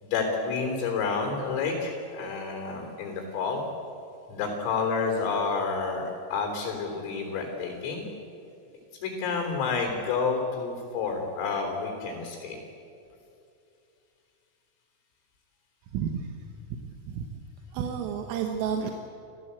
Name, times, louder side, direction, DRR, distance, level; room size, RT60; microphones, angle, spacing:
voice 1, 0.0-3.6 4.3-8.0 9.0-12.6, left 4 dB, 85° left, 2 dB, 6.1 m, -29 dB
voice 2, 15.9-16.3 16.7-16.8 17.1-17.3 17.7-18.9, right 7 dB, 85° right, 3 dB, 3.9 m, -30 dB
28.5 x 15.0 x 8.3 m, 2.6 s
omnidirectional pair, 5.8 m